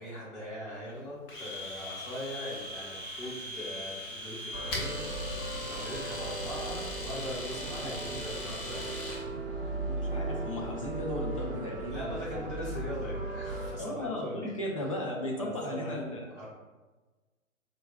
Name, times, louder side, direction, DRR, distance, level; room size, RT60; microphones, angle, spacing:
voice 1, 0.0-9.2 9.5-9.9 11.9-14.5 14.9-15.0 15.4-16.5, equal, 10° left, -12 dB, 1.5 m, -41 dB
Domestic sounds home sounds, 1.3-9.2, left 1 dB, 40° left, 0.9 m, -40 dB
sound 1, 4.5-13.7, right 2 dB, 40° right, 0.6 m, -37 dB
voice 2, 9.8-12.4 13.8-16.5, left 1 dB, 25° left, -2 dB, 0.4 m, -36 dB
4.4 x 2.4 x 2.3 m, 1.2 s
figure-of-eight pair, 130°, 41 cm